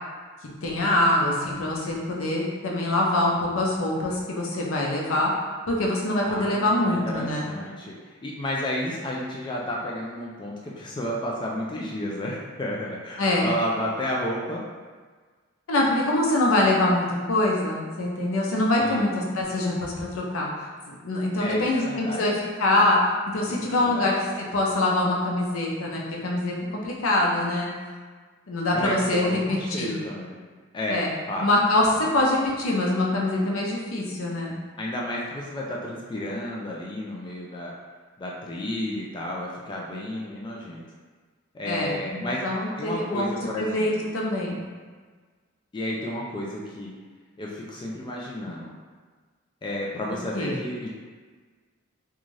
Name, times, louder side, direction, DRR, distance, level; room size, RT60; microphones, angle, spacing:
voice 1, 0.6-5.3 5.7-7.5 13.2-13.5 15.7-20.5 20.9-23.0 23.3-27.7 28.5-30.0 30.9-31.1 31.4-34.5 41.6-44.6 50.3-50.6, left 1 dB, 85° left, -2 dB, 0.6 m, -24 dB
voice 2, 6.3-14.6 18.8-19.1 21.4-22.4 23.6-24.1 28.7-30.4 30.7-31.4 31.9-32.1 34.8-37.7 38.2-40.8 41.5-42.5 42.8-44.1 45.7-46.9 47.4-48.7 49.6-50.9, left 1 dB, 25° left, -3 dB, 0.3 m, -32 dB
2.6 x 2.4 x 3.1 m, 1.5 s
head